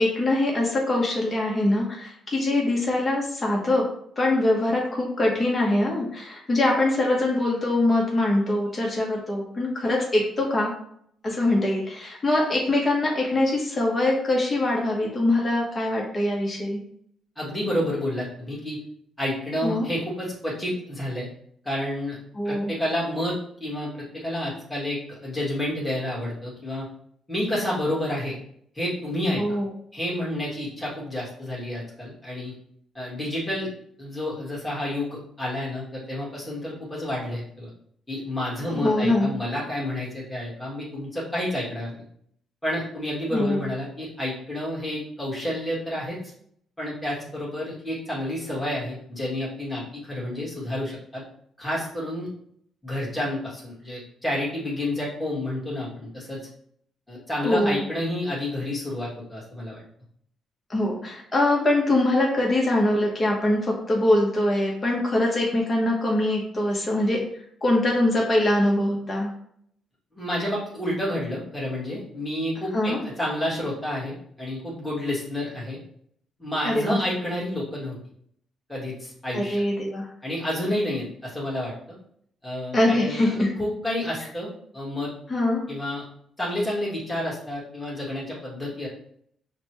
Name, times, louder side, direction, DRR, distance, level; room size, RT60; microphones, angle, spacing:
voice 1, 0.0-3.8 4.2-10.7 11.2-16.8 19.6-19.9 22.4-22.7 29.4-29.7 38.7-39.3 43.3-43.6 57.4-57.8 60.7-67.2 67.6-69.3 72.7-73.0 76.6-77.0 79.3-80.1 82.7-83.5 85.3-85.6, left 1 dB, 30° left, -2 dB, 1.0 m, -23 dB
voice 2, 17.3-18.8 19.2-21.3 21.6-22.2 22.4-26.9 27.3-28.3 28.7-29.6 29.9-32.5 32.9-33.7 34.0-37.7 38.1-42.0 42.6-46.2 46.8-51.2 51.6-52.3 52.8-56.4 57.1-59.8 70.1-75.8 76.4-78.0 78.7-79.6 80.2-81.7 82.4-83.2 83.6-84.5 84.7-85.1 85.7-86.0 86.4-88.9, left 1 dB, 10° left, -7 dB, 1.6 m, -30 dB
5.1 x 2.2 x 3.0 m, 0.67 s
cardioid pair, 90°, 0 cm